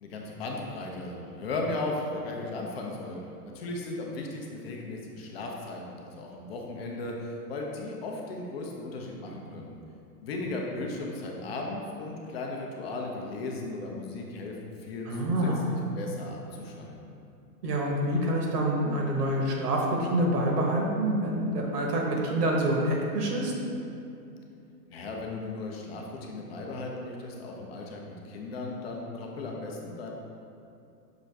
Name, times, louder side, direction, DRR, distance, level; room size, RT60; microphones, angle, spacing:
voice 1, 0.0-9.7 10.2-17.2 24.9-30.1, left 2 dB, 40° left, 0 dB, 0.5 m, -36 dB
voice 2, 15.1-15.7 17.6-23.5, right 1 dB, 70° right, -1 dB, 1.1 m, -27 dB
6.0 x 2.5 x 3.2 m, 2.7 s
hypercardioid pair, 145°, 49 cm